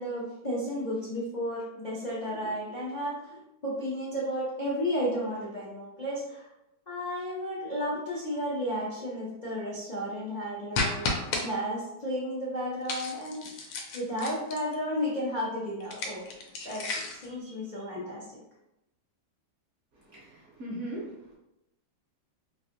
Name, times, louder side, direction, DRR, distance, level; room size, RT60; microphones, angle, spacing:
voice 1, 0.0-6.5 6.9-11.1 11.4-13.6 13.9-16.2 16.6-18.2, equal, 70° left, -8 dB, 0.4 m, -33 dB
sound 1, 10.7-11.4 12.9-14.7 15.8-17.3, left 3 dB, 85° left, 1.3 m, -32 dB
voice 2, 19.9-21.4, right 1 dB, 60° right, -5 dB, 0.8 m, -40 dB
3.2 x 2.6 x 2.5 m, 0.87 s
omnidirectional pair, 2.0 m